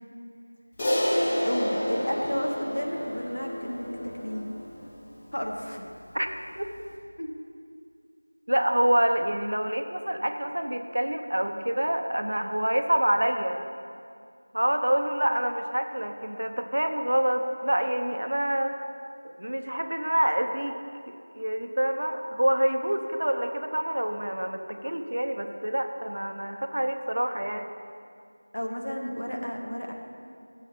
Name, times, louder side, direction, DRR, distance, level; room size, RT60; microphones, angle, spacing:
Crash cymbal, 0.8-5.4, equal, 10° left, 0.8 m, -30 dB
voice 1, 1.4-3.9 4.2-4.5 5.3-5.9 7.2-7.3 28.5-29.9, equal, 70° left, 1 dB, 1.5 m, -32 dB
voice 2, 8.5-13.6 14.5-18.7 19.2-20.8 21.1-27.7, right 1 dB, 60° right, 6 dB, 0.8 m, -27 dB
7.3 x 6.8 x 7.0 m, 2.3 s
figure-of-eight pair, 175°, 0 cm